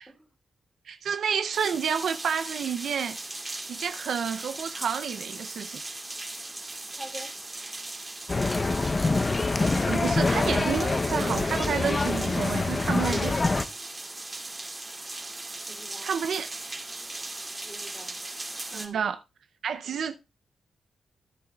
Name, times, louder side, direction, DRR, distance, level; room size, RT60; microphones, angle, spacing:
voice 1, 0.9-3.2 3.7-5.8 9.9-13.4 16.0-16.6 18.7-19.2 19.6-20.2, right 7 dB, 75° right, 0.4 m, -30 dB
sound 1, 1.5-18.9, right 2 dB, 25° right, 2.2 m, -38 dB
sound 2, 6.6-6.7 8.5-9.5 9.8-10.7, left 1 dB, 15° left, 1.6 m, -47 dB
voice 2, 6.9-7.3 14.3-14.5 15.7-16.1 17.6-18.2 18.7-19.1 19.8-20.0, right 1 dB, 10° right, 2.7 m, -45 dB
sound 3, 8.3-13.6, left 3 dB, 30° left, 0.6 m, -25 dB
14.0 x 9.6 x 2.2 m
cardioid pair, 70°, 0 cm